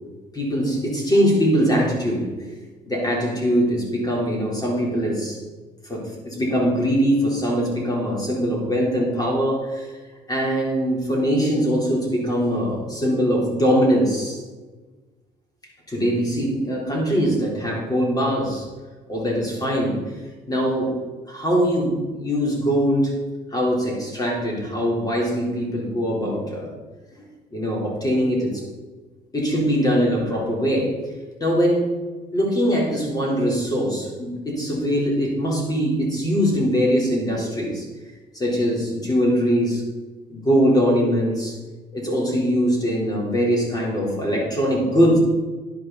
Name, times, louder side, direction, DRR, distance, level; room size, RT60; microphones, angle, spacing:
voice 1, 0.3-2.3 2.9-5.4 5.8-10.0 10.3-14.4 15.9-18.7 19.1-20.0 20.5-21.0 21.3-23.1 23.5-26.7 27.1-27.2 27.5-28.6 29.3-31.0 31.4-31.9 32.3-37.8 38.3-39.8 40.3-41.6 41.9-45.2, equal, 20° left, -2 dB, 3.9 m, -22 dB
11.0 x 10.5 x 4.2 m, 1.3 s
cardioid pair, 110°, 17 cm